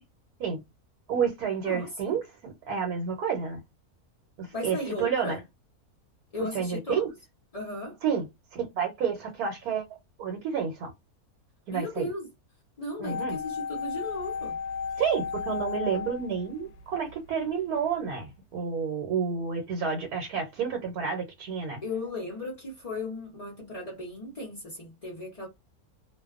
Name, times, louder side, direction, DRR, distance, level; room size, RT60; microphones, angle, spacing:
voice 1, 1.1-3.6 4.4-5.4 6.5-7.1 8.0-8.3 8.5-9.8 10.2-10.9 11.7-12.1 13.0-13.4 15.0-21.8, right 6 dB, 85° right, 1.2 m, -30 dB
voice 2, 1.6-2.1 4.5-5.4 6.3-7.0 7.5-8.0 11.7-12.3 12.8-14.6 21.8-25.5, left 2 dB, 35° left, 0.5 m, -36 dB
sound 1, 13.0-17.2 17.4-17.5, left 6 dB, 80° left, 1.0 m, -34 dB
2.5 x 2.2 x 2.4 m
omnidirectional pair, 1.6 m